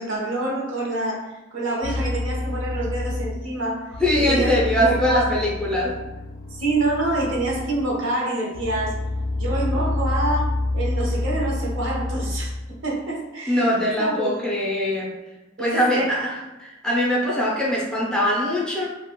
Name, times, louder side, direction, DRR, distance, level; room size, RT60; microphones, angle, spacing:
voice 1, 0.0-3.9 4.3-5.3 6.5-9.0 9.4-13.7 14.0-14.4 15.6-16.1, right 2 dB, 70° right, -2 dB, 0.7 m, -27 dB
sound 1, 1.8-3.5 3.9-8.1 8.5-12.7, left 2 dB, 75° left, 0.3 m, -28 dB
voice 2, 4.0-5.9 13.5-15.1 15.6-18.9, equal, 5° left, -5 dB, 0.4 m, -22 dB
2.4 x 2.1 x 2.8 m, 1.0 s
head